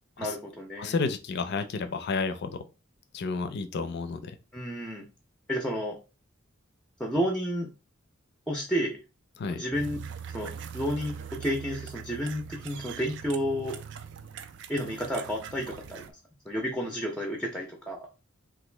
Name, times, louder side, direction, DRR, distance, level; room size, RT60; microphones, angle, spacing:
voice 1, 0.2-1.0 4.5-5.1 5.5-6.0 7.0-7.7 8.5-9.0 9.5-10.0 10.3-13.8 14.7-16.0 16.5-18.1, equal, 5° left, 0.5 m, -31 dB
voice 2, 0.8-2.5 3.1-4.4 9.4-9.6, left 4 dB, 55° left, 0.4 m, -31 dB
sound 1, 9.7-16.1, right 7 dB, 60° right, 0.4 m, -42 dB
2.9 x 2.4 x 3.2 m
head